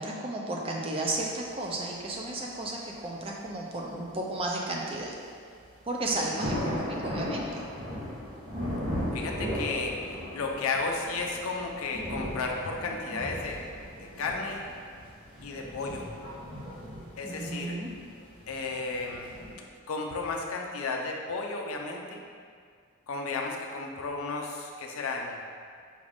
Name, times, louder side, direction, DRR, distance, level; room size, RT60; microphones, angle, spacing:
voice 1, 0.0-5.1 5.9-7.6 17.2-17.9, right 2 dB, 25° right, -1 dB, 0.4 m, -33 dB
sound 1, 1.0-1.1 1.6-1.7 2.2-2.3 2.6-2.7 3.8-4.1 4.9-5.3 5.6-5.7 6.0-19.5, equal, 80° right, 1.3 m, -37 dB
voice 2, 9.1-13.6 14.0-14.7 15.4-16.1 17.2-17.8 18.5-22.2 23.1-25.4, left 3 dB, 80° left, 1 dB, 0.5 m, -33 dB
5.1 x 2.4 x 3.4 m, 2.1 s
head